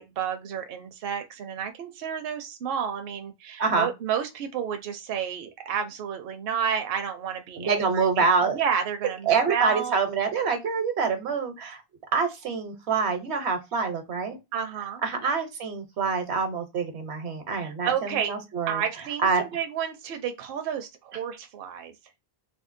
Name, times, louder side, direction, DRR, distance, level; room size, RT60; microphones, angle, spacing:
voice 1, 0.0-10.0 14.5-15.0 17.6-18.3 18.7-21.9, right 8 dB, 65° right, 0.7 m, -31 dB
voice 2, 7.6-8.6 9.3-11.8 12.1-14.4 15.0-18.8 19.2-19.4, right 5 dB, 85° right, 1.1 m, -26 dB
3.5 x 2.2 x 2.5 m
omnidirectional pair, 1.1 m